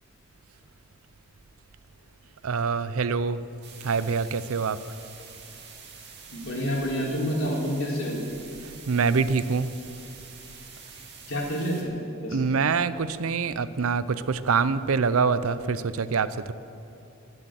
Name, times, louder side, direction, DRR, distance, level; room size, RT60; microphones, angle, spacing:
voice 1, 2.4-3.4 3.8-4.8 8.9-9.7 12.3-16.5, right 5 dB, 80° right, 15 dB, 0.6 m, -25 dB
sound 1, 3.6-11.8, right 6 dB, 50° right, 2.2 m, -46 dB
voice 2, 6.3-8.2 11.3-11.9 12.2-12.4, equal, 65° left, -4 dB, 3.9 m, -28 dB
20.5 x 7.9 x 7.6 m, 2.8 s
head